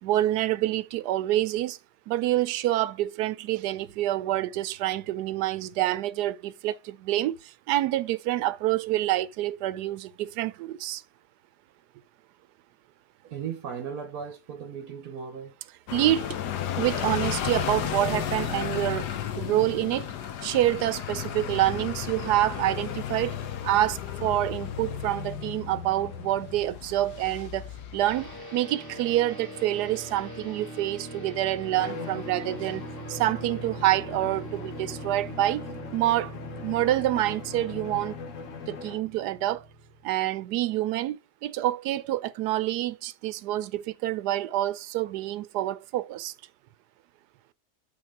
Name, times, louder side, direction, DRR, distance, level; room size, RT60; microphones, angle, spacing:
voice 1, 0.0-1.8 2.1-11.0 15.9-16.4 16.8-20.1 20.4-23.4 23.6-35.6 35.9-36.3 36.6-38.2 38.7-39.7 40.0-46.3, right 14 dB, 90° right, 1.2 m, -27 dB
voice 2, 13.2-15.6, right 7 dB, 70° right, 1.6 m, -37 dB
sound 1, 15.9-28.4, left 10 dB, 85° left, 1.4 m, -33 dB
sound 2, 28.0-40.3, right 1 dB, 15° left, 2.0 m, -41 dB
Bowed string instrument, 31.7-39.1, left 6 dB, 55° left, 1.2 m, -41 dB
8.5 x 3.8 x 4.5 m
omnidirectional pair, 1.7 m